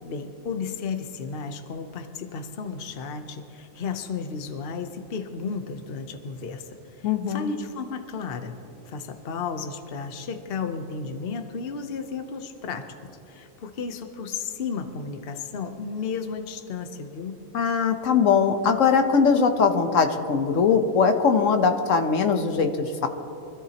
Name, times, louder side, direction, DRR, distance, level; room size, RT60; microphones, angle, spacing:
voice 1, 0.0-8.6 8.8-12.9 13.3-17.4, left 5 dB, 50° left, 7 dB, 1.0 m, -33 dB
voice 2, 7.0-7.5 17.5-23.1, left 5 dB, 70° left, 7 dB, 1.4 m, -21 dB
25.0 x 13.5 x 2.9 m, 2.9 s
omnidirectional pair, 1.4 m